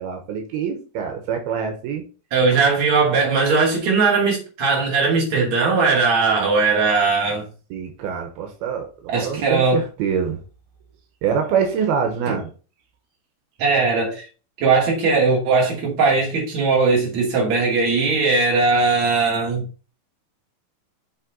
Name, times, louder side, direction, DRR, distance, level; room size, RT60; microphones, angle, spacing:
voice 1, 0.0-2.1 7.7-10.4 11.2-12.5, right 7 dB, 85° right, 3.1 m, -25 dB
voice 2, 2.3-7.5 9.1-9.8 12.3-12.4 13.6-14.2 14.6-19.7, right 4 dB, 50° right, 3.5 m, -19 dB
7.4 x 4.7 x 3.9 m
omnidirectional pair, 4.3 m